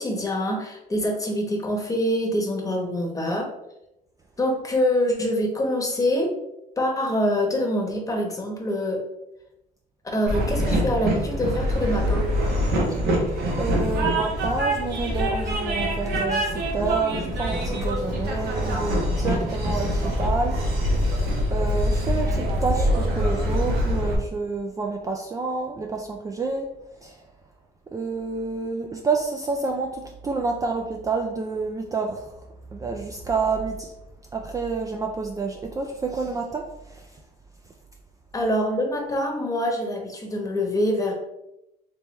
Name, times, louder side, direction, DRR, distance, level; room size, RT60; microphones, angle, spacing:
voice 1, 0.0-3.5 4.4-6.3 6.8-9.0 10.0-12.2 38.3-41.1, left 1 dB, 20° left, 1 dB, 1.0 m, -25 dB
Train, 10.3-24.1, equal, 70° right, 1.1 m, -24 dB
voice 2, 13.6-20.8 21.5-26.7 27.0-27.2 27.9-32.3 32.7-33.9 34.3-37.1, right 4 dB, 20° right, 1 dB, 0.3 m, -29 dB
3.4 x 3.1 x 3.0 m, 0.87 s
cardioid pair, 110°, 17 cm